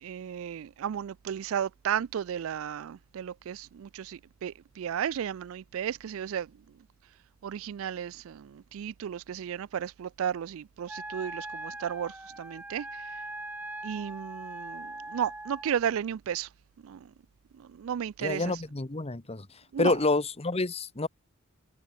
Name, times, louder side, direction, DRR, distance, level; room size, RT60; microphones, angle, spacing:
voice 1, 0.0-6.5 7.4-12.9 13.8-16.5 16.8-17.1 17.6-18.6 19.7-19.9, right 8 dB, 70° right, 0.4 m, -34 dB
Wind instrument woodwind instrument, 10.9-15.8, right 2 dB, 10° right, 0.9 m, -41 dB
voice 2, 18.2-19.5 19.8-21.1, left 3 dB, 30° left, 1.1 m, -28 dB
head